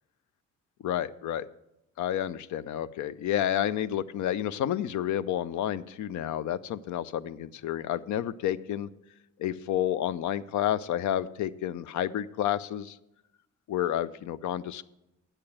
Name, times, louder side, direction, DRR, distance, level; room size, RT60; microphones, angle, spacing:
voice 1, 0.8-1.5 2.0-8.9 9.4-13.0 13.7-14.8, left 11 dB, 75° left, 16 dB, 0.6 m, -30 dB
8.8 x 6.7 x 7.2 m, 0.89 s
cardioid pair, 90°, 30 cm